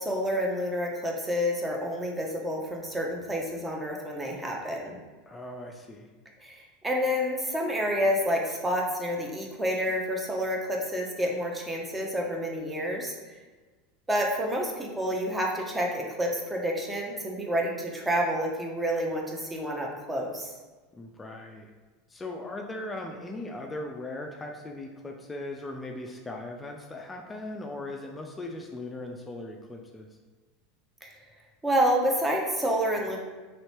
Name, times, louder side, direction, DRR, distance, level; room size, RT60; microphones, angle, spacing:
voice 1, 0.0-5.0 6.4-13.4 14.1-20.5 31.0-31.1 31.6-33.2, equal, 15° right, 0 dB, 0.7 m, -29 dB
voice 2, 5.3-6.1 20.9-21.7 22.1-30.1, left 2 dB, 20° left, 2 dB, 0.4 m, -39 dB
3.1 x 2.8 x 3.1 m, 1.3 s
hypercardioid pair, 85°, 0 cm